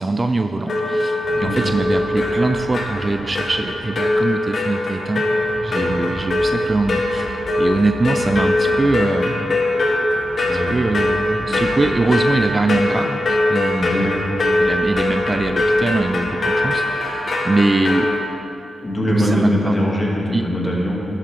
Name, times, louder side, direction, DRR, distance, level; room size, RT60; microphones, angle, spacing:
voice 1, 0.0-5.2 5.6-9.6 10.5-13.9 14.6-18.1 19.2-19.7 20.3-20.4, right 2 dB, 35° right, 6 dB, 0.5 m, -22 dB
sound 1, 0.7-18.2, left 2 dB, 55° left, 1.4 m, -22 dB
sound 2, 1.2-18.2, right 1 dB, 70° right, 1.3 m, -39 dB
voice 2, 1.3-1.7 5.7-5.9 10.4-10.7 11.4-11.6 13.8-14.2 18.8-21.0, equal, 25° left, -3 dB, 2.4 m, -22 dB
11.5 x 8.1 x 3.7 m, 2.7 s
cardioid pair, 55°, 0 cm